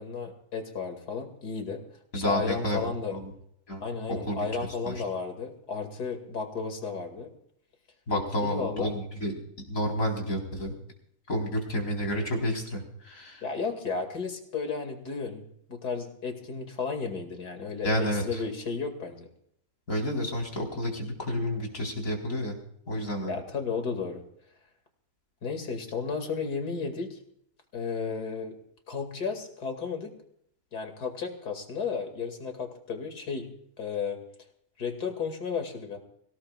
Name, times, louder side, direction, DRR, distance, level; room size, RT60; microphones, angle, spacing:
voice 1, 0.0-1.8 2.1-3.2 3.8-7.3 8.4-8.9 13.4-15.4 15.7-19.3 23.3-24.2 25.4-27.2 27.7-28.5 28.9-30.1 30.7-33.5 33.8-34.2 34.8-36.0, left 5 dB, 85° left, 5 dB, 2.9 m, -33 dB
voice 2, 2.1-2.8 3.1-3.2 3.7-3.8 4.3-4.4 4.8-4.9 8.1-9.3 9.6-10.7 11.3-13.4 17.8-18.4 19.9-22.5 22.9-23.4, equal, 60° left, 1 dB, 4.6 m, -30 dB
25.0 x 18.0 x 2.4 m, 0.69 s
omnidirectional pair, 1.7 m